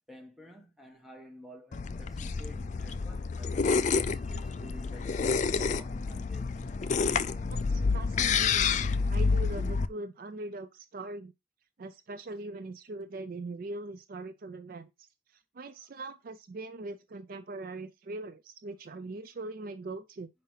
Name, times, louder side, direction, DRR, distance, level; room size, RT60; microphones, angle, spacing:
voice 1, 0.1-6.6, left 1 dB, ahead, 1.4 m, -51 dB
sound 1, 1.7-9.9, left 5 dB, 35° left, 0.3 m, -29 dB
voice 2, 7.5-11.3 11.8-15.1 15.5-20.3, right 2 dB, 45° right, 0.4 m, -41 dB
5.6 x 5.1 x 5.5 m
head